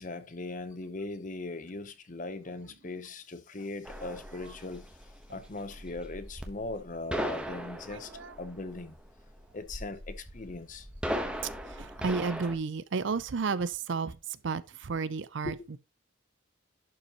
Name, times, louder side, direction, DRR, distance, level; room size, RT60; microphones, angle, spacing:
voice 1, 0.0-4.9 5.3-8.1 8.4-9.0 9.5-10.9 15.4-15.6, left 2 dB, 40° left, 0.8 m, -39 dB
sound 1, 3.8-12.5, equal, 5° right, 1.0 m, -38 dB
voice 2, 7.9-8.4 11.7-15.8, right 4 dB, 60° right, 0.5 m, -33 dB
11.5 x 5.3 x 3.0 m
head